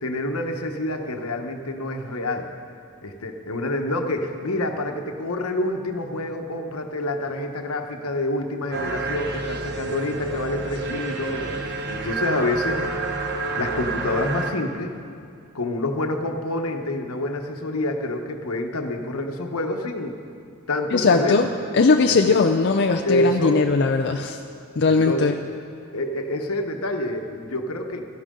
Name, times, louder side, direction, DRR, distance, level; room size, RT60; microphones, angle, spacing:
voice 1, 0.0-2.5 3.0-13.2 13.6-14.9 15.5-20.1 20.7-21.4 22.1-22.3 23.0-23.6 24.9-25.4 25.9-28.1, left 1 dB, 80° left, 4 dB, 1.1 m, -27 dB
sound 1, 8.7-14.5, right 3 dB, 50° right, 1.0 m, -29 dB
voice 2, 20.9-21.5 21.7-24.4 24.8-25.4, left 4 dB, 50° left, 4 dB, 0.5 m, -19 dB
16.5 x 13.0 x 3.8 m, 2.4 s
head